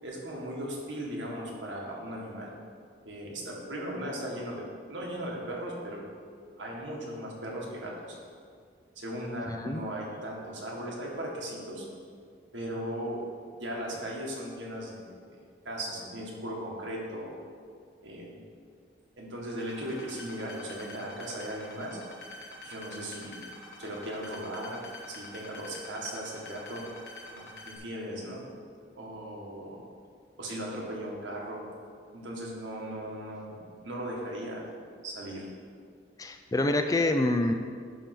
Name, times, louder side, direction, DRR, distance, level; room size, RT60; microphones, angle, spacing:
voice 1, 0.0-2.5 3.0-6.0 6.6-8.1 8.9-11.8 12.5-13.2 13.6-15.0 15.3-15.4 15.6-17.3 18.0-18.4 19.2-22.0 22.6-23.3 23.8-24.8 25.1-26.8 27.3-28.4 28.9-29.8 30.4-31.6 32.1-33.5 33.8-34.6 35.0-35.5, right 1 dB, 80° right, -3 dB, 1.7 m, -37 dB
voice 2, 9.5-9.8 36.2-37.5, left 2 dB, 20° left, 6 dB, 0.4 m, -26 dB
sound 1, 19.6-27.8, left 2 dB, 60° left, 1.4 m, -46 dB
10.0 x 3.5 x 6.0 m, 2.1 s
head